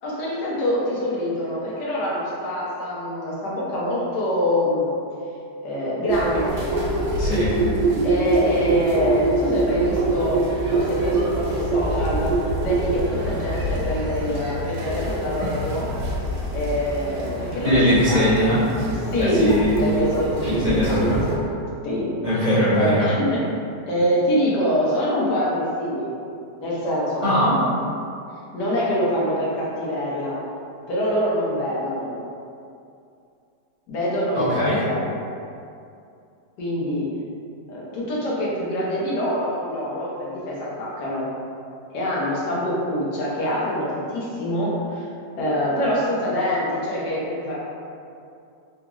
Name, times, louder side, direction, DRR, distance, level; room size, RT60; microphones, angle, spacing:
voice 1, 0.0-4.9 5.6-6.6 8.0-10.4 10.7-12.3 12.6-15.9 16.5-18.6 19.1-19.5 19.8-21.0 21.8-22.4 22.8-23.4 23.9-26.1 26.6-27.3 28.5-30.4 30.9-32.1 33.9-35.0 36.6-37.1 37.7-41.3 41.9-45.1 45.4-47.5, equal, 85° left, -6 dB, 1.4 m, -25 dB
sound 1, 6.1-21.4, right 2 dB, 70° right, 1.1 m, -25 dB
voice 2, 7.2-7.6 17.6-18.6 19.2-19.8 20.4-21.2 22.2-23.1 27.2-27.6 34.3-34.8, equal, 40° right, -12 dB, 0.7 m, -20 dB
3.5 x 2.4 x 2.9 m, 2.5 s
omnidirectional pair, 1.7 m